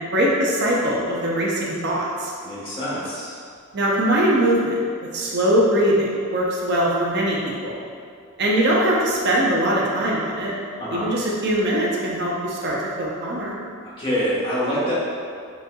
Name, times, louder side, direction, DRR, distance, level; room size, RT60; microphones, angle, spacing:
voice 1, 0.0-2.3 3.7-4.8 5.1-7.8 8.4-10.5 10.9-13.5, right 1 dB, 50° right, -4 dB, 0.5 m, -21 dB
voice 2, 2.4-3.3 10.8-11.1 13.8-14.9, equal, 25° left, -9 dB, 1.1 m, -26 dB
4.1 x 3.6 x 2.2 m, 2.2 s
head